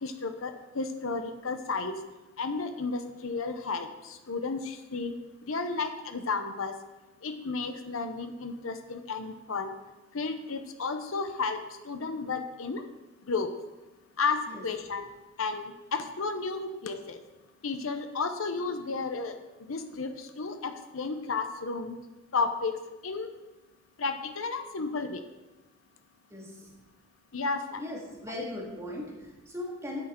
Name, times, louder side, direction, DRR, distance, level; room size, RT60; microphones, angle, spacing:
voice 1, 0.0-2.0 2.4-5.1 5.5-6.7 7.2-9.7 10.1-12.8 13.3-13.5 14.2-15.1 15.4-17.2 17.6-19.3 19.7-22.0 22.3-22.7 23.0-23.3 24.0-25.2 27.3-27.8, left 4 dB, 85° left, 7 dB, 0.8 m, -32 dB
voice 2, 26.3-26.7 27.8-30.0, left 1 dB, 15° right, -2 dB, 2.0 m, -38 dB
9.6 x 8.8 x 4.4 m, 1.1 s
head